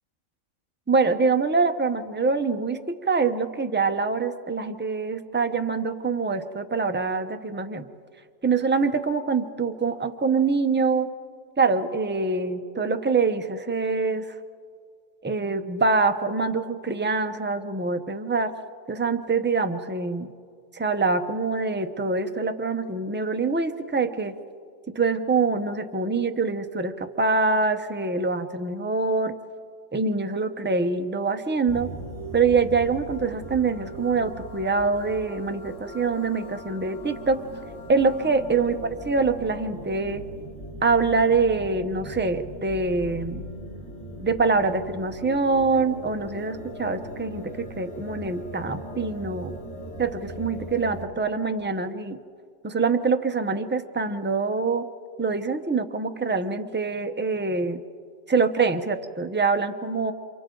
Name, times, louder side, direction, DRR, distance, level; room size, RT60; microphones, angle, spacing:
voice 1, 0.9-7.8 8.4-11.1 11.6-14.3 15.2-18.5 18.9-20.3 20.7-24.3 24.9-29.4 29.9-31.9 32.3-37.4 37.9-38.8 39.1-40.3 40.8-43.4 44.2-49.5 50.0-52.2 52.6-54.9 55.2-57.8 58.3-60.1, right 4 dB, 10° right, 7 dB, 0.6 m, -24 dB
sound 1, 31.7-51.1, right 1 dB, 40° left, 3.5 m, -39 dB
29.0 x 28.5 x 3.9 m, 2.1 s
omnidirectional pair, 1.5 m